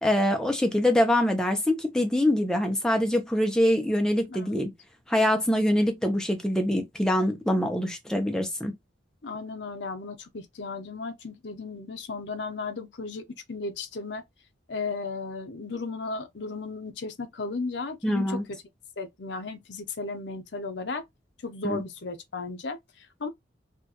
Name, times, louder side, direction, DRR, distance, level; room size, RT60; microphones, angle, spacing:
voice 1, 0.0-4.7 5.1-8.7 18.0-18.4 21.6-21.8, left 1 dB, 5° left, 0.7 m, -24 dB
voice 2, 9.2-14.2 14.7-18.4 19.0-21.0 21.4-23.3, left 3 dB, 65° left, 0.7 m, -35 dB
4.4 x 2.5 x 2.9 m
head